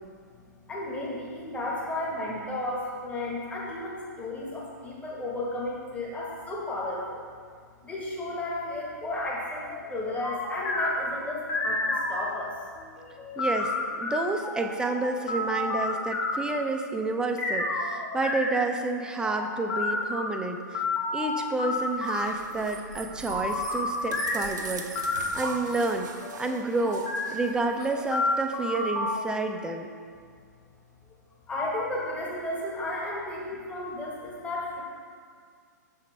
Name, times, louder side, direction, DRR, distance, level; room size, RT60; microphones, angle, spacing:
voice 1, 0.7-7.2 7.8-12.5 13.2-13.3 31.5-34.8, left 1 dB, 15° left, -4 dB, 1.4 m, -33 dB
sound 1, 9.6-12.6 13.0-16.5 17.4-20.3 20.7-22.2 23.3-24.5 25.0-25.2 26.2-26.4 26.9-27.3 27.7-29.2, left 2 dB, 30° left, 1.1 m, -30 dB
voice 2, 13.4-20.8 21.1-26.1 26.4-27.0 27.3-29.9, right 2 dB, 10° right, 4 dB, 0.5 m, -30 dB
sound 2, 21.9-28.9, right 5 dB, 75° right, 0.7 m, -41 dB
7.0 x 5.9 x 3.3 m, 2.1 s
hypercardioid pair, 115°, 10 cm